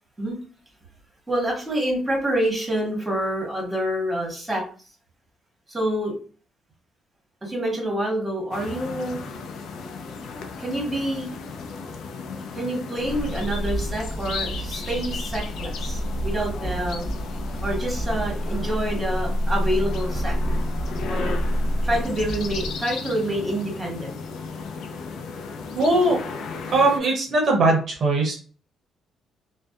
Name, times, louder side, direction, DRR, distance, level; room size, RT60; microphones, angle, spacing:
voice 1, 1.3-4.6 5.7-6.1 7.4-9.2 10.6-11.4 12.5-17.1 17.6-20.3 21.1-21.4 21.8-24.2, right 1 dB, 15° right, -2 dB, 1.3 m, -27 dB
sound 1, 8.5-27.0, left 5 dB, 75° left, 0.4 m, -35 dB
sound 2, 13.0-22.8, equal, 50° left, 1.4 m, -28 dB
voice 2, 25.8-26.2 26.7-28.3, right 2 dB, 55° right, 0 dB, 0.7 m, -20 dB
2.6 x 2.1 x 2.4 m, 0.39 s
cardioid pair, 90°, 0 cm